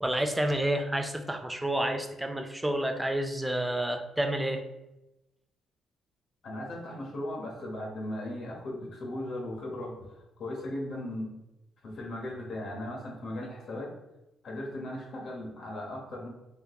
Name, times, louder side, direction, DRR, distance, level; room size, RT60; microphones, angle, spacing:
voice 1, 0.0-4.6, right 1 dB, 10° right, 6 dB, 0.4 m, -29 dB
voice 2, 6.4-11.3 11.8-14.0 14.4-16.3, left 1 dB, 60° left, -1 dB, 0.9 m, -37 dB
3.5 x 2.8 x 2.3 m, 0.96 s
cardioid pair, 90°, 0 cm